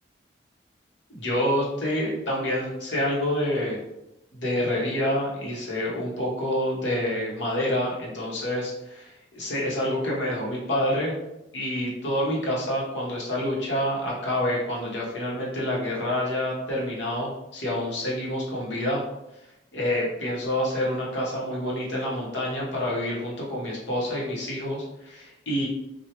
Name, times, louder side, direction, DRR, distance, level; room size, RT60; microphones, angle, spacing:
voice 1, 1.1-3.8 4.3-11.1 11.5-19.0 19.7-25.7, left 1 dB, 80° left, -4 dB, 1.0 m, -27 dB
3.1 x 2.3 x 2.9 m, 0.90 s
head